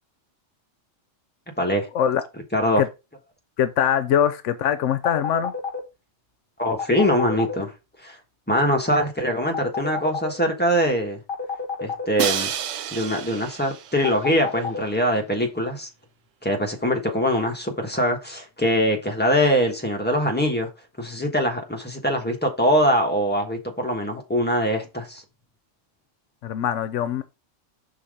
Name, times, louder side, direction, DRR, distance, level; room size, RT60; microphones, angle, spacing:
voice 1, 3.6-5.5 26.4-27.2, left 9 dB, 80° left, 0.9 m, -22 dB
sound 1, 5.0-5.8 6.8-7.5 9.5-10.3 11.3-12.0 14.0-14.8, left 5 dB, 45° left, 1.6 m, -29 dB
voice 2, 6.6-7.7 8.0-8.2 8.5-11.2 11.8-12.5 12.9-15.9 16.4-20.7 21.0-25.2, equal, 10° left, 1.2 m, -23 dB
Crash cymbal, 12.2-14.2, right 9 dB, 80° right, 1.0 m, -29 dB
5.7 x 3.9 x 4.9 m
omnidirectional pair, 1.3 m